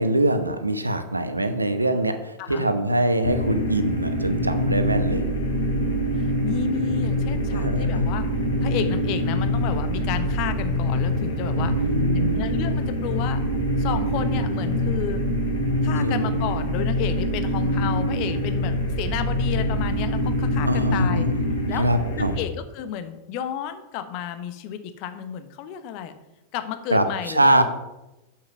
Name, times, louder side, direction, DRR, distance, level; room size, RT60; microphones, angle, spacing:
voice 1, 0.0-5.2 7.5-8.1 11.6-12.4 16.0-16.2 20.6-21.4 21.7-22.3 26.9-27.6, right 1 dB, 85° right, 9 dB, 0.9 m, -23 dB
sound 1, 3.2-22.4, equal, 70° left, 2.8 m, -24 dB
voice 2, 5.0-5.4 5.7-5.9 6.1-8.3 8.6-11.7 12.1-13.4 13.8-15.2 15.8-21.3 21.7-21.9 22.2-26.1 26.5-27.6, left 8 dB, 45° left, 10 dB, 1.0 m, -32 dB
7.7 x 7.3 x 6.0 m, 0.96 s
figure-of-eight pair, 90°, 0 cm